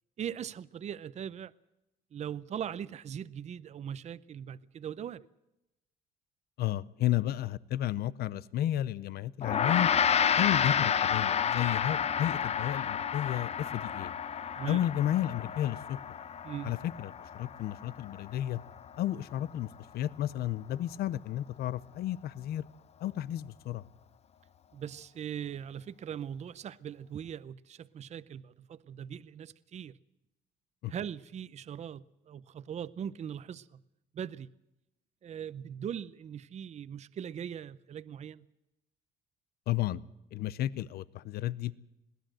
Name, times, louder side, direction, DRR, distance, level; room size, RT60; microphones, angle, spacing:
voice 1, 0.2-1.5 2.1-5.3 14.5-14.8 16.4-16.7 24.7-30.0 30.9-33.8 34.1-34.5 35.2-38.5, right 9 dB, 40° right, 0.7 m, -40 dB
voice 2, 6.6-9.9 10.4-14.1 14.7-16.0 16.6-18.6 19.0-19.7 19.9-22.6 23.0-23.8 30.8-30.9 39.7-40.0 40.3-41.8, left 12 dB, 70° left, 0.8 m, -32 dB
Gong, 9.4-19.0, left 8 dB, 40° left, 0.8 m, -30 dB
21.5 x 16.5 x 7.8 m
cardioid pair, 110°, 17 cm